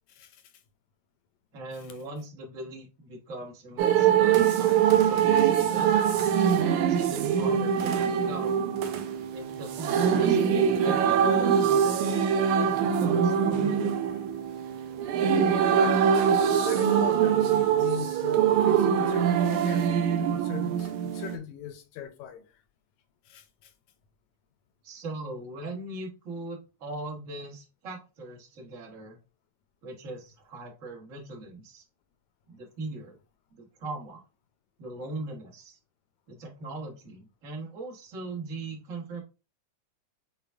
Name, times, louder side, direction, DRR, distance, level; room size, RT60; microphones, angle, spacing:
voice 1, 0.1-0.5 15.3-15.4 15.7-16.0 16.6-19.9 20.2-22.6 23.2-23.7, left 9 dB, 75° left, 1.9 m, -39 dB
voice 2, 1.5-6.3 6.7-8.6 9.3-12.1 12.5-14.1 24.8-29.2 29.8-31.8 32.5-33.2 33.5-34.2 34.8-35.8 36.3-39.2, right 2 dB, 55° right, 0.8 m, -40 dB
sound 1, 3.8-21.4, right 8 dB, 80° right, 2.0 m, -23 dB
6.9 x 2.3 x 3.3 m
omnidirectional pair, 3.5 m